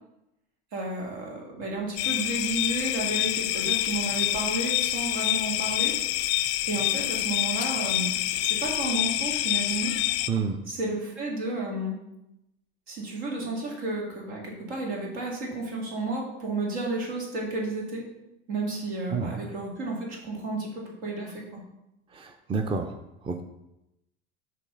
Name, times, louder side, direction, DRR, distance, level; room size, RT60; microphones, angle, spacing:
voice 1, 0.7-5.9 6.7-10.0 10.7-12.0 12.9-18.0 18.5-21.6, right 2 dB, 75° right, -2 dB, 2.1 m, -32 dB
sound 1, 2.0-10.3, left 15 dB, 50° left, 0.4 m, -27 dB
voice 2, 10.3-10.6 19.1-19.4 22.1-22.9 23.2-23.4, right 5 dB, 15° right, 6 dB, 0.5 m, -29 dB
6.0 x 3.4 x 5.3 m, 0.88 s
hypercardioid pair, 85°, 33 cm